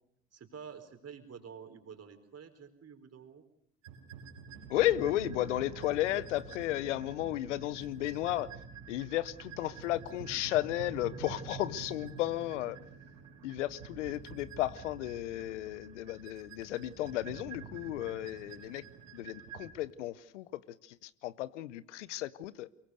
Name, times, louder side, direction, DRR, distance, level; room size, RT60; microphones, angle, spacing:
voice 1, 0.3-3.4, right 7 dB, 45° right, 4.4 m, -49 dB
sound 1, 3.8-19.7, right 6 dB, 85° right, 5.9 m, -48 dB
voice 2, 4.7-8.5 8.9-12.8 13.4-18.8 19.1-22.7, left 15 dB, 85° left, 0.8 m, -34 dB
23.5 x 22.5 x 6.5 m
hypercardioid pair, 55°, 35 cm